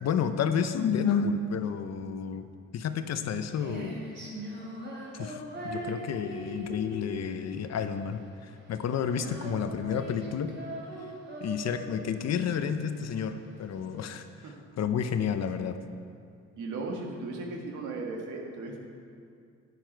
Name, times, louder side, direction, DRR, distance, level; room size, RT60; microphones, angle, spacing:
voice 1, 0.0-2.4 2.7-3.9 5.1-10.5 11.4-14.3 14.8-15.8, left 7 dB, 60° left, 9 dB, 0.8 m, -30 dB
Female singing, 3.1-14.0, right 1 dB, 40° right, 3.0 m, -41 dB
voice 2, 16.6-18.8, right 3 dB, 85° right, 0 dB, 1.9 m, -36 dB
11.0 x 9.8 x 4.6 m, 2.4 s
cardioid pair, 90°, 30 cm